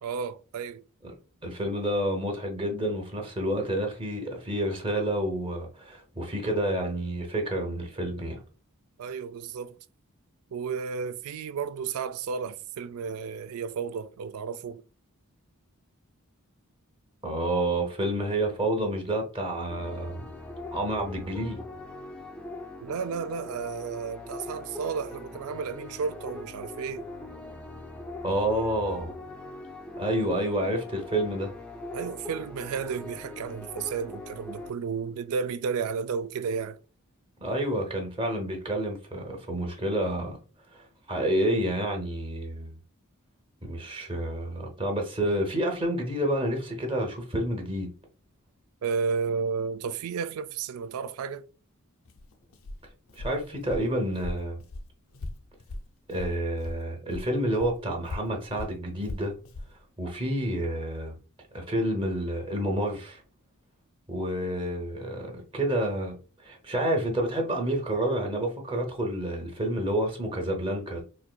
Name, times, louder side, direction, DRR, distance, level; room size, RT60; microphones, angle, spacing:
voice 1, 0.0-0.8 9.0-9.8 10.5-14.8 22.8-27.1 31.9-36.8 48.8-51.4, right 6 dB, 75° right, 0.3 m, -32 dB
voice 2, 1.4-8.4 17.2-20.3 20.7-21.6 28.2-29.1 30.0-31.5 37.4-40.4 40.7-42.8 43.6-47.9 53.2-54.6 56.1-59.3 60.0-61.1 61.5-63.2 64.1-66.2 66.4-71.0, right 1 dB, 25° right, 0.7 m, -29 dB
sound 1, 19.7-34.7, left 2 dB, 5° left, 0.4 m, -41 dB
Walk footsteps, 52.0-56.8 57.1-59.7, left 2 dB, 65° left, 0.5 m, -39 dB
4.2 x 2.5 x 2.2 m
head